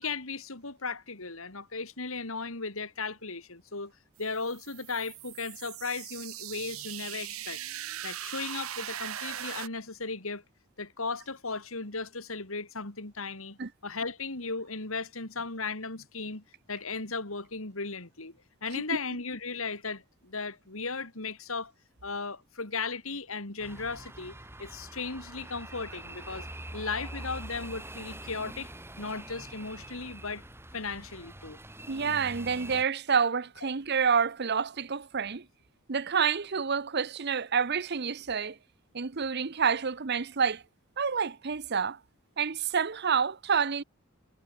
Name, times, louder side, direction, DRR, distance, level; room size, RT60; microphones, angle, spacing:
voice 1, 0.0-3.9 4.2-7.6 8.0-10.4 10.8-16.4 16.7-18.3 18.6-21.7 22.0-24.3 24.6-26.5 26.7-28.7 29.0-30.4 30.7-31.6, left 4 dB, 70° left, 3.2 m, -36 dB
sound 1, 4.2-9.7, right 11 dB, 80° right, 1.2 m, -40 dB
sound 2, 23.6-32.8, right 1 dB, 10° right, 6.2 m, -44 dB
voice 2, 31.9-35.4 35.9-38.6 38.9-40.6 41.0-42.0 42.4-43.8, right 6 dB, 50° right, 0.8 m, -28 dB
head